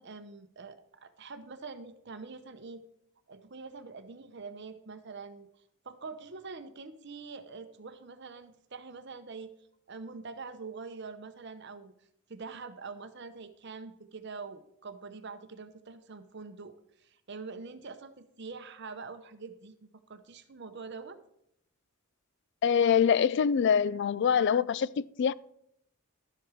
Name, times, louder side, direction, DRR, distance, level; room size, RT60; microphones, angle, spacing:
voice 1, 0.0-2.8 3.3-5.5 5.8-9.5 9.9-11.9 12.3-21.2, right 4 dB, 50° right, 0.8 m, -45 dB
voice 2, 22.6-25.3, left 7 dB, 55° left, 0.3 m, -25 dB
11.5 x 7.6 x 4.9 m
head